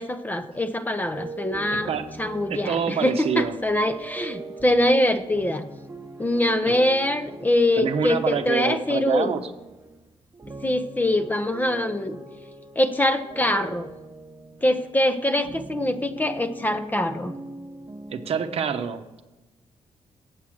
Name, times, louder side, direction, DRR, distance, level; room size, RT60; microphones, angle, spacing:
voice 1, 0.0-1.9 2.2-5.6 6.2-9.3 10.6-12.2 12.8-13.9 14.6-17.3, left 1 dB, 15° left, 9 dB, 0.6 m, -23 dB
sound 1, 1.1-10.1 10.3-14.9 15.4-18.4, right 2 dB, 20° right, 1.0 m, -41 dB
voice 2, 1.7-2.1 2.5-3.6 6.7-6.8 7.8-9.5 18.1-19.0, right 7 dB, 60° right, 7 dB, 0.8 m, -26 dB
8.2 x 7.3 x 6.3 m, 1.1 s
cardioid pair, 130°, 12 cm